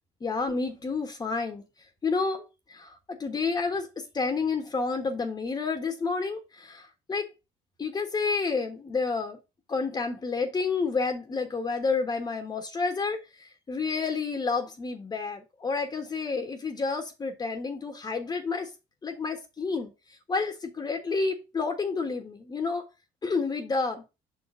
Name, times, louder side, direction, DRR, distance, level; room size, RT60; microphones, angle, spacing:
voice 1, 0.2-1.6 2.0-2.4 2.7-7.3 7.8-9.4 9.7-18.7 19.0-19.9 20.3-22.8 23.2-24.0, left 4 dB, 30° left, 1.4 m, -30 dB
6.2 x 4.2 x 4.8 m
cardioid pair, 95°, 14 cm